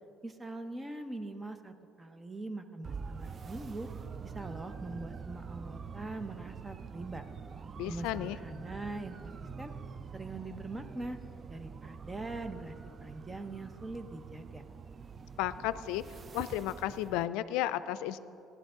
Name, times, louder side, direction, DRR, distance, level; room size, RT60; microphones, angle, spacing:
voice 1, 0.2-3.9 4.2-7.2 7.8-9.7 10.1-11.2 11.5-14.6, right 2 dB, 20° right, 8 dB, 0.9 m, -42 dB
sound 1, 2.8-17.3, right 5 dB, 35° right, 0.4 m, -45 dB
voice 2, 7.8-8.4 15.4-16.0 16.3-18.2, left 14 dB, 90° left, 14 dB, 0.4 m, -33 dB
16.0 x 11.5 x 3.8 m, 2.8 s
cardioid pair, 100°, 0 cm